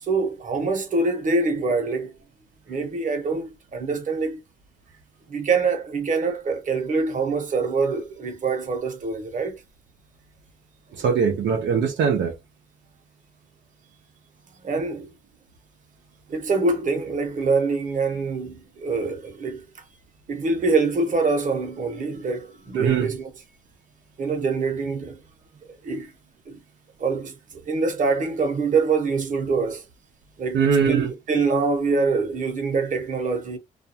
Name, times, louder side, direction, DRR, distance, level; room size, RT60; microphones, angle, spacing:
voice 1, 0.0-2.1 2.7-4.4 5.3-9.6 10.9-11.1 14.6-15.1 16.3-19.6 20.3-23.3 24.2-25.2 25.8-26.1 26.5-26.6 27.0-29.8 30.4-33.6, right 4 dB, 40° right, 1.0 m, -25 dB
voice 2, 11.0-12.3 22.7-23.1 30.5-31.1, right 6 dB, 70° right, 0.6 m, -21 dB
2.4 x 2.2 x 2.7 m
cardioid pair, 90°, 20 cm